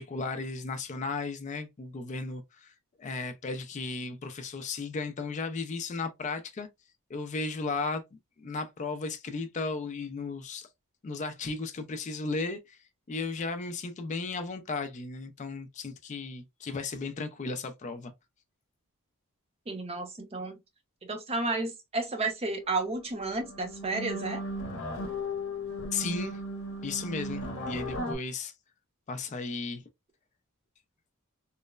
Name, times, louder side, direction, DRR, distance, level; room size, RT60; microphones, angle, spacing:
voice 1, 0.0-2.7 3.0-6.7 7.1-8.0 8.4-10.7 11.0-18.1 25.9-26.4 26.8-28.5 29.1-29.8, left 4 dB, 35° left, 0.3 m, -35 dB
voice 2, 19.7-20.6 21.1-24.4, right 3 dB, 25° right, 0.5 m, -32 dB
sound 1, 22.7-22.9 23.2-28.2, left 1 dB, 55° left, 0.8 m, -36 dB
3.0 x 2.0 x 2.2 m
head